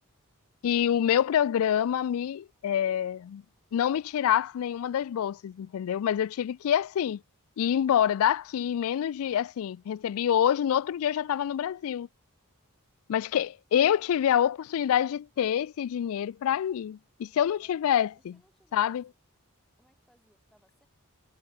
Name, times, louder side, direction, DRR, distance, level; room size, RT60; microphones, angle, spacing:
voice 1, 0.6-3.4 3.7-7.2 7.6-12.1 13.1-18.4 18.7-19.0, left 9 dB, 65° left, 0.3 m, -26 dB
voice 2, 17.3-19.2 19.8-20.9, equal, ahead, 3.3 m, -66 dB
head